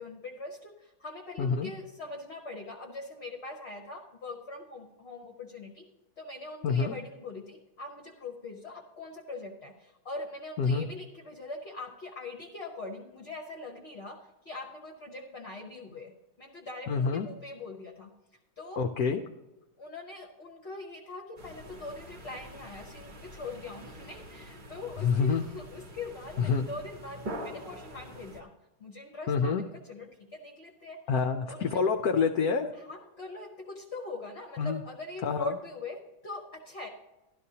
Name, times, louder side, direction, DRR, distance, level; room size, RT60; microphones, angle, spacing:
voice 1, 0.0-5.9 6.2-14.2 14.4-16.1 16.4-18.1 18.6-18.9 19.8-28.5 28.8-31.0 31.5-31.8 32.7-36.9, left 2 dB, 40° left, 0 dB, 1.0 m, -42 dB
voice 2, 1.4-1.7 6.6-7.0 10.6-10.9 16.9-17.3 18.8-19.2 25.0-25.4 26.4-26.6 29.3-29.7 31.1-32.7 34.6-34.8 35.2-35.6, left 5 dB, 70° left, 4 dB, 0.9 m, -27 dB
sound 1, 21.4-28.4, equal, 35° right, 0.8 m, -45 dB
12.5 x 11.5 x 2.8 m, 1.0 s
omnidirectional pair, 2.1 m